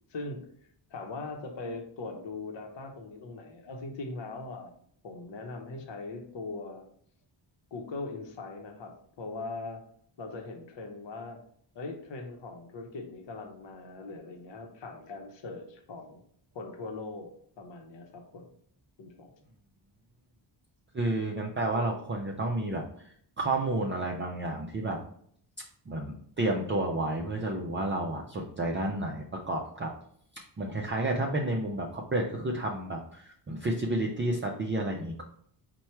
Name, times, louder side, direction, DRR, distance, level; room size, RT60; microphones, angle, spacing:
voice 1, 0.1-0.5 0.9-4.7 5.0-6.8 7.7-9.8 10.2-11.4 11.7-16.2 16.5-17.3 17.6-18.5 19.0-19.3, left 3 dB, 70° left, 3 dB, 0.8 m, -40 dB
voice 2, 20.9-25.0 25.9-29.9 30.6-35.2, right 2 dB, 25° right, 0 dB, 0.4 m, -31 dB
4.4 x 2.2 x 4.3 m, 0.63 s
wide cardioid pair, 130°, 46 cm